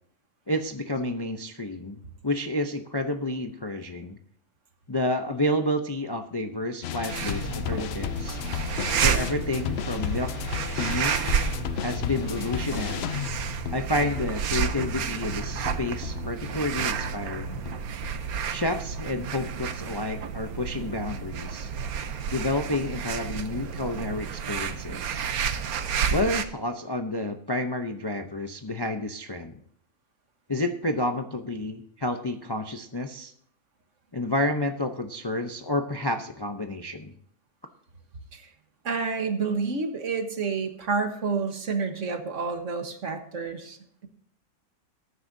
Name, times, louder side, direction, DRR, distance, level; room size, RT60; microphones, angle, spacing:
voice 1, 0.5-4.2 4.9-8.4 9.0-11.2 11.8-13.2 13.7-17.6 18.5-21.7 22.3-25.3 26.1-29.5 30.5-33.3 34.1-37.1, left 1 dB, 25° left, 5 dB, 0.5 m, -30 dB
sound 1, 6.8-18.2, left 10 dB, 65° left, 0.7 m, -34 dB
sound 2, 7.1-26.4, right 7 dB, 85° right, 1.3 m, -31 dB
voice 2, 38.8-43.8, right 4 dB, 60° right, 6 dB, 1.6 m, -29 dB
19.5 x 9.7 x 2.7 m, 0.65 s
omnidirectional pair, 1.5 m